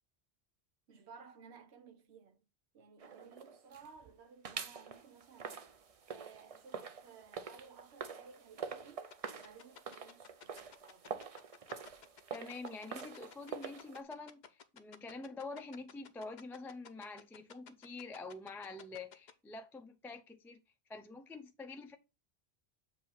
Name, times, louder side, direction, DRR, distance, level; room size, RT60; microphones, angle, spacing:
voice 1, 0.9-2.4 2.7-5.7 6.1-9.1 9.3-11.3, right 5 dB, 85° right, 1.1 m, -57 dB
sound 1, 3.0-4.1 4.4-14.0, right 6 dB, 40° right, 0.6 m, -46 dB
sound 2, 9.1-19.3, left 7 dB, 50° left, 0.7 m, -53 dB
voice 2, 12.3-20.6 20.9-22.0, left 3 dB, 5° left, 0.3 m, -47 dB
7.3 x 2.8 x 5.6 m
omnidirectional pair, 1.1 m